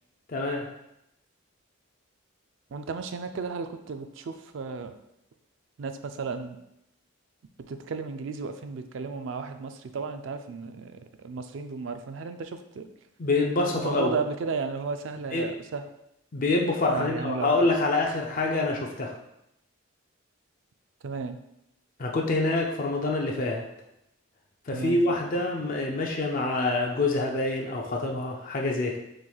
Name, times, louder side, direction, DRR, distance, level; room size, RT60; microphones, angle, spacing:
voice 1, 0.3-0.7 13.2-14.2 15.3-15.5 16.3-19.1 22.0-23.7 24.7-29.0, left 2 dB, 40° left, 0 dB, 0.4 m, -26 dB
voice 2, 2.7-4.9 5.8-6.6 7.7-12.9 13.7-15.8 16.9-17.5 21.0-21.4 24.7-25.0, right 4 dB, 60° right, 8 dB, 0.3 m, -34 dB
6.1 x 3.1 x 2.3 m, 0.83 s
head